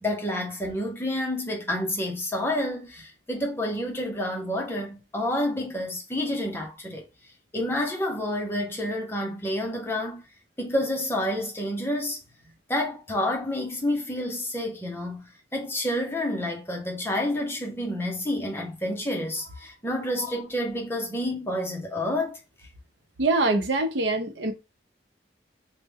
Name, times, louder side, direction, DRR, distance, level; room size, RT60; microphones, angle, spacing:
voice 1, 0.0-7.0 7.5-10.2 10.6-12.2 12.7-22.4, left 1 dB, 15° left, 0.7 m, -29 dB
voice 2, 23.2-24.5, right 2 dB, 75° right, 0.6 m, -24 dB
3.1 x 2.1 x 3.4 m
head